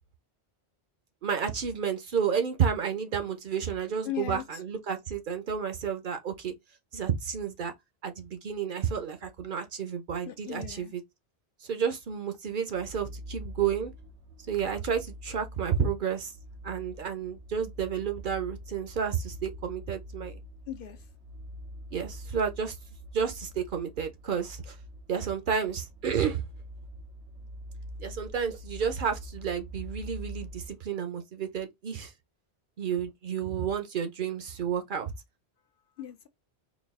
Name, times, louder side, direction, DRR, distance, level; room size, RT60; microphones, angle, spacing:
voice 1, 1.2-6.5 6.9-7.7 8.0-11.0 11.6-13.9 14.5-16.3 16.6-20.4 21.9-22.8 23.1-24.8 25.1-26.4 28.0-32.1 32.8-35.1, right 7 dB, 55° right, 0.7 m, -31 dB
voice 2, 4.0-4.6 10.2-10.9 20.7-21.0 36.0-36.3, left 11 dB, 60° left, 0.7 m, -38 dB
sound 1, 12.7-30.7, equal, 90° right, 1.0 m, -45 dB
4.0 x 2.3 x 3.5 m
omnidirectional pair, 1.1 m